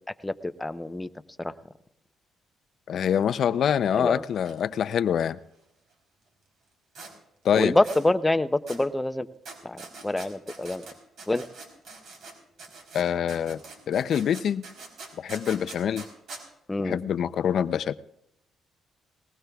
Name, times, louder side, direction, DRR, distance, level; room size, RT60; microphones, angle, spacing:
voice 1, 0.6-1.1 1.4-1.5 4.0-4.2 7.6-9.3 9.6-10.8 11.3-11.4 16.7-17.0, left 2 dB, 15° left, 0.7 m, -26 dB
voice 2, 2.9-5.4 7.4-7.8 12.9-13.6 13.9-14.7 15.2-16.0 16.8-17.9, left 8 dB, 65° left, 0.5 m, -25 dB
sound 1, 4.3-4.5 4.8-4.9 6.9-7.1 7.8-8.0 8.7-8.8 9.4-12.3 12.6-16.4, right 3 dB, 70° right, 3.6 m, -43 dB
20.0 x 19.5 x 2.3 m
cardioid pair, 90°, 0 cm